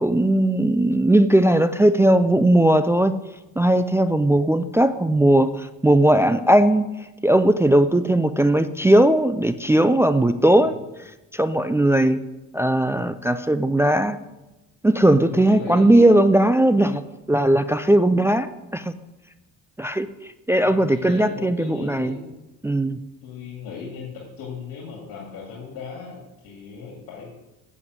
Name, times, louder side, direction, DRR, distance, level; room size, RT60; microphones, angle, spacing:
voice 1, 0.0-3.2 3.6-6.9 7.2-10.8 11.3-12.2 12.5-14.2 14.8-17.0 17.3-18.5 18.7-18.9 19.8-22.2 22.6-23.0, right 1 dB, 10° right, 11 dB, 0.3 m, -18 dB
voice 2, 15.2-16.2 20.5-22.4 23.2-27.3, left 5 dB, 85° left, -2 dB, 2.3 m, -37 dB
8.6 x 7.1 x 7.9 m, 1.0 s
cardioid pair, 120°, 34 cm